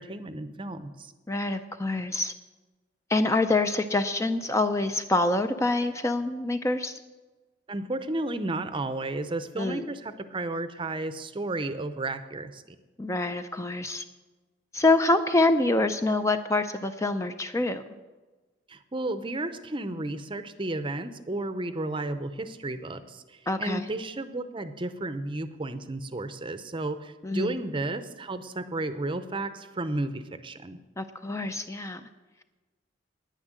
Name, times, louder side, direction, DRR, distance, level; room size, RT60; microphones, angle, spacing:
voice 1, 0.0-1.1 7.7-12.8 18.7-30.8, right 2 dB, 25° right, 11 dB, 0.6 m, -33 dB
voice 2, 1.3-2.3 3.1-7.0 9.6-9.9 13.0-14.0 14.7-17.8 23.5-23.8 27.2-27.5 31.0-32.0, left 2 dB, 15° left, 8 dB, 0.4 m, -26 dB
10.0 x 9.7 x 7.4 m, 1.2 s
head